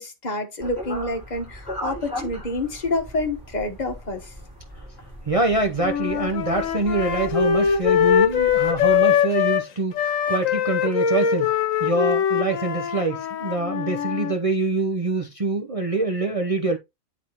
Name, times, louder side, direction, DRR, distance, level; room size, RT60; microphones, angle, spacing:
voice 1, 0.0-4.3, left 2 dB, 35° left, 1.2 m, -28 dB
sound 1, 0.6-9.0, left 1 dB, 5° right, 4.7 m, -38 dB
voice 2, 5.2-11.5 11.8-16.8, right 3 dB, 40° right, 0.5 m, -25 dB
sound 2, 5.8-9.7 9.9-14.3, left 8 dB, 70° left, 1.2 m, -22 dB
8.9 x 4.1 x 2.9 m
omnidirectional pair, 1.4 m